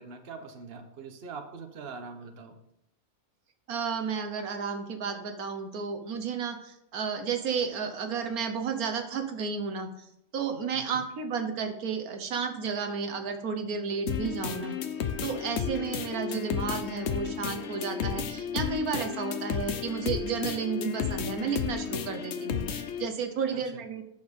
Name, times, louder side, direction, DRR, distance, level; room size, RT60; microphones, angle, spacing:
voice 1, 0.0-2.5 10.7-11.0 23.5-23.8, right 4 dB, 45° right, 5 dB, 1.2 m, -43 dB
voice 2, 3.7-9.9 10.3-14.7 15.2-24.0, right 5 dB, 80° right, 6 dB, 1.5 m, -32 dB
sound 1, 14.1-23.1, left 8 dB, 55° left, 0.9 m, -33 dB
8.5 x 6.3 x 5.2 m, 0.76 s
omnidirectional pair, 1.5 m